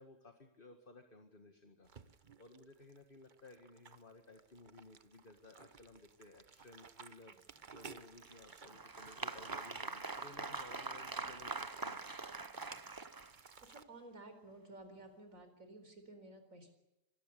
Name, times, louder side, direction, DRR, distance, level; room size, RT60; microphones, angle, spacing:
voice 1, 0.0-12.2, left 2 dB, 40° left, 5 dB, 2.0 m, -58 dB
sound 1, 1.8-13.8, right 5 dB, 40° right, 1.1 m, -56 dB
Applause, 8.2-13.5, right 3 dB, 20° right, 0.6 m, -44 dB
voice 2, 13.6-16.7, right 2 dB, 85° right, 7 dB, 4.7 m, -54 dB
25.5 x 18.5 x 6.9 m, 0.91 s
omnidirectional pair, 1.4 m